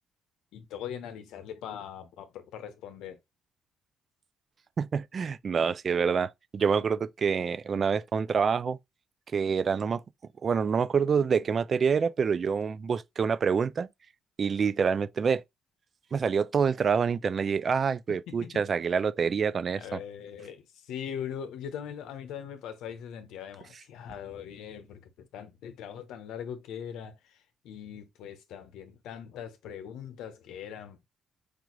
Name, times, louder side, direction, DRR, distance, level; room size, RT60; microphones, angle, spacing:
voice 1, 0.5-3.2 18.1-18.5 19.7-20.6 20.9-25.0 25.3-27.1 27.6-31.0, left 8 dB, 90° left, 0.7 m, -41 dB
voice 2, 4.8-8.8 9.3-10.0 10.4-13.9 14.4-15.4 16.1-20.0 23.7-23.8, right 6 dB, 45° right, 0.4 m, -27 dB
4.9 x 2.4 x 3.0 m
cardioid pair, 90°, 0 cm